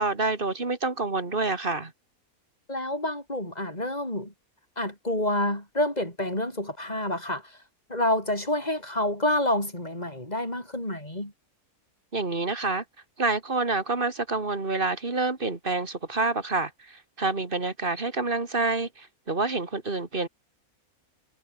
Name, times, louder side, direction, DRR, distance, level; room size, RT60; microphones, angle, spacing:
voice 1, 0.0-1.9 12.1-12.8 13.2-20.3, right 3 dB, 35° right, 2.4 m, -28 dB
voice 2, 2.7-4.3 4.8-7.6 7.9-11.3, left 1 dB, 25° left, 6.7 m, -28 dB
omnidirectional pair, 1.5 m